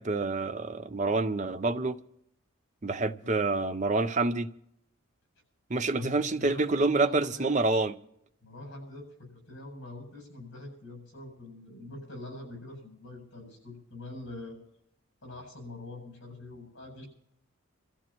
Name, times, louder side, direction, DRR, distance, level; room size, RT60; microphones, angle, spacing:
voice 1, 0.0-2.0 2.8-4.5 5.7-7.9, right 3 dB, 35° right, 0.6 m, -27 dB
voice 2, 6.0-7.6 8.4-14.6 15.2-17.1, left 2 dB, 55° left, 7.8 m, -44 dB
27.5 x 14.5 x 3.0 m
head